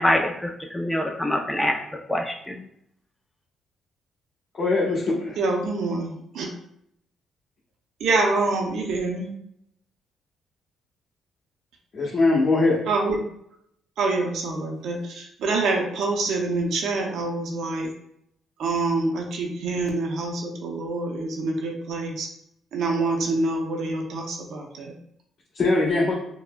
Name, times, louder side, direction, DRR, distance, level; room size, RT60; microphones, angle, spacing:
voice 1, 0.0-1.8 2.1-2.6, left 1 dB, 5° left, 2 dB, 0.5 m, -24 dB
voice 2, 4.6-5.4 11.9-12.8 25.5-26.1, left 3 dB, 50° left, -8 dB, 1.0 m, -21 dB
voice 3, 5.4-6.5 8.0-9.3 12.9-13.2 14.0-17.9 18.6-22.3 22.7-24.9, right 3 dB, 75° right, 1 dB, 0.6 m, -26 dB
4.8 x 2.2 x 2.2 m, 0.74 s
cardioid pair, 90°, 0 cm